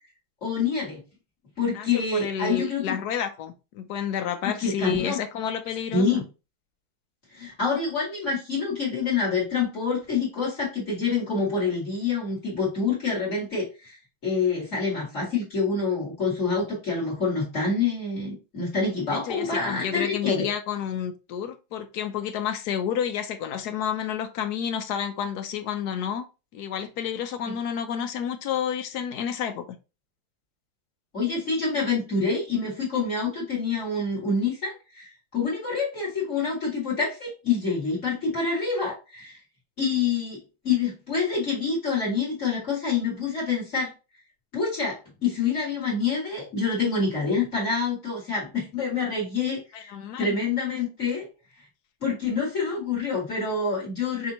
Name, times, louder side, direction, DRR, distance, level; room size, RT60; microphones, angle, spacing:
voice 1, 0.4-1.0 1.6-3.0 4.6-5.2 5.9-6.3 7.3-14.0 14.2-20.5 27.4-27.5 31.1-39.4 39.8-43.9 44.5-49.9 50.2-51.3 52.0-54.3, left 4 dB, 35° left, 2.4 m, -27 dB
voice 2, 1.7-6.3 19.1-26.3 26.5-29.8 49.7-50.4 50.7-50.8, left 8 dB, 70° left, 0.9 m, -30 dB
6.1 x 2.9 x 2.8 m
omnidirectional pair, 2.2 m